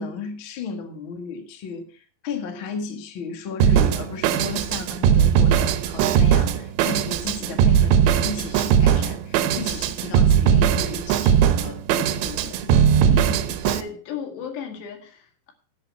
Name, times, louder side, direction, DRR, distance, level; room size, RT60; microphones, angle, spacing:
voice 1, 0.0-12.7, left 5 dB, 50° left, 5 dB, 1.5 m, -34 dB
Drum kit, 3.6-13.8, right 8 dB, 80° right, 3.0 m, -19 dB
voice 2, 13.1-15.5, left 7 dB, 75° left, 5 dB, 4.2 m, -35 dB
10.5 x 8.2 x 7.1 m, 0.42 s
omnidirectional pair, 5.1 m